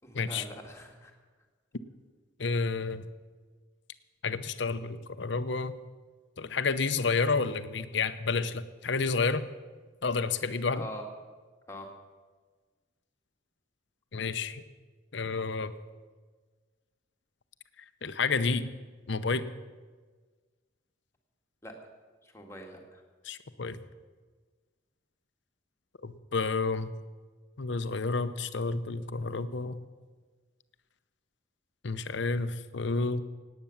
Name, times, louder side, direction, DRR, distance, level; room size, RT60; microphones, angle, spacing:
voice 1, 0.0-1.1 10.8-11.0 11.7-11.9 21.6-21.7 22.2-23.0, left 1 dB, 15° left, 1 dB, 2.0 m, -43 dB
voice 2, 2.4-3.1 4.2-5.7 6.4-9.4 10.0-10.8 14.1-14.6 15.1-15.7 18.0-18.7 19.1-19.5 23.2-23.8 26.0-26.9 27.6-29.8 31.8-33.2, left 4 dB, 65° left, 12 dB, 0.8 m, -30 dB
17.5 x 9.2 x 7.1 m, 1.4 s
head